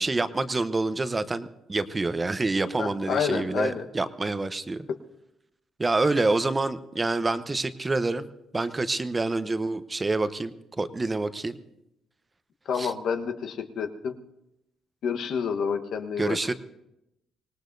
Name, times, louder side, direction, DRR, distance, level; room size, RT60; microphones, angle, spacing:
voice 1, 0.0-4.9 5.8-11.6 12.7-12.9 16.2-16.5, right 2 dB, 25° right, 12 dB, 0.8 m, -27 dB
voice 2, 2.8-3.9 12.7-14.2 15.0-16.4, left 6 dB, 70° left, 6 dB, 1.2 m, -29 dB
25.0 x 18.5 x 2.7 m, 0.87 s
cardioid pair, 90°, 0 cm